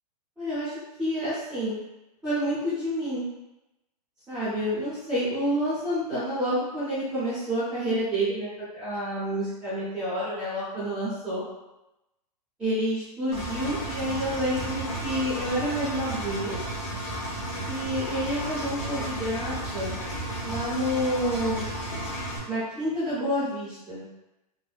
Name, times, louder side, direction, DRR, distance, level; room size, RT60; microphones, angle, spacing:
voice 1, 0.4-0.7 1.0-1.7 2.2-3.2 4.3-8.5 8.7-11.4 12.6-16.6 17.7-20.0 20.4-21.6 22.5-24.0, equal, 5° right, -14 dB, 0.5 m, -28 dB
Engine, 13.3-22.4, right 1 dB, 55° left, 0.9 m, -33 dB
2.5 x 2.0 x 2.3 m, 0.94 s
hypercardioid pair, 165°, 21 cm